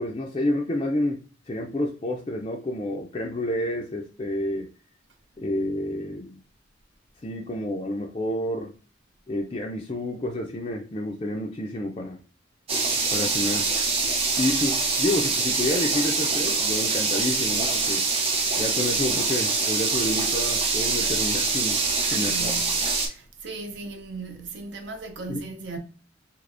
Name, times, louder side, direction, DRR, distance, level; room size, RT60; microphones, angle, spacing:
voice 1, 0.0-4.7 5.4-6.4 7.2-8.7 9.3-12.2 13.1-13.7 14.4-18.0 18.6-22.5 25.3-25.4, left 1 dB, 30° left, 0.3 m, -29 dB
sound 1, 12.7-23.1, right 4 dB, 30° right, 0.7 m, -24 dB
voice 2, 22.0-22.8 23.1-25.8, right 3 dB, 65° right, 0.7 m, -37 dB
3.3 x 2.9 x 2.5 m
head